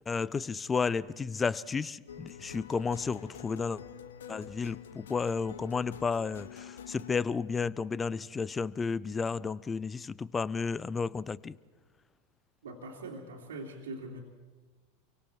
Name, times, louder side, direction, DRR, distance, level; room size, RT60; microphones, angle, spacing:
voice 1, 0.1-3.8 4.3-11.5, left 5 dB, 20° left, 0.6 m, -32 dB
sound 1, 2.1-7.2, left 8 dB, 70° left, 0.9 m, -47 dB
voice 2, 12.6-14.2, right 2 dB, 70° right, 3.0 m, -42 dB
28.5 x 24.0 x 4.5 m
figure-of-eight pair, 85°, 0 cm